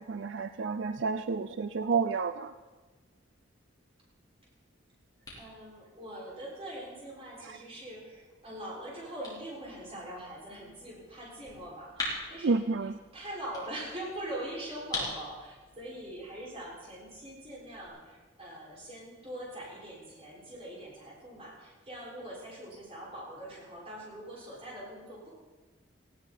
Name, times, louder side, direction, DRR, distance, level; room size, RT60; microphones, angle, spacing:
voice 1, 0.0-2.5 12.4-12.9, right 4 dB, 70° right, 10 dB, 0.5 m, -30 dB
sound 1, 4.4-17.9, left 2 dB, 20° left, 4.8 m, -45 dB
voice 2, 5.3-25.3, right 1 dB, 30° right, -5 dB, 6.6 m, -43 dB
18.5 x 16.5 x 4.6 m, 1.3 s
head